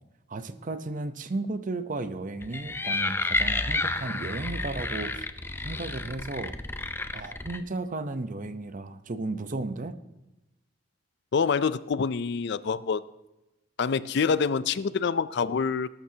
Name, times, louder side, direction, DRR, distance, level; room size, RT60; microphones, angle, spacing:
voice 1, 0.3-5.3 5.6-6.6 7.1-10.0, right 2 dB, 45° right, 11 dB, 0.8 m, -34 dB
sound 1, 2.4-7.6, left 2 dB, 10° left, 0.5 m, -30 dB
voice 2, 11.3-13.0 13.8-15.9, left 5 dB, 60° left, 16 dB, 0.4 m, -26 dB
19.5 x 12.0 x 2.8 m, 0.97 s
head